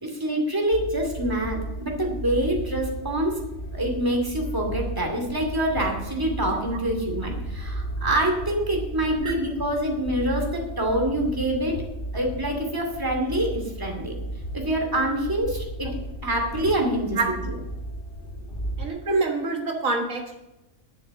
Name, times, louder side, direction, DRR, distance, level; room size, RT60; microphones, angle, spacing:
voice 1, 0.0-3.3 3.7-11.7 12.1-14.1 14.5-15.9 16.2-17.2, right 1 dB, 15° right, 1 dB, 2.4 m, -26 dB
sound 1, 0.7-18.9, right 1 dB, 45° left, 1.7 m, -35 dB
voice 2, 18.8-20.4, right 3 dB, 90° right, 2 dB, 2.0 m, -26 dB
11.0 x 7.1 x 7.0 m, 0.95 s
omnidirectional pair, 1.4 m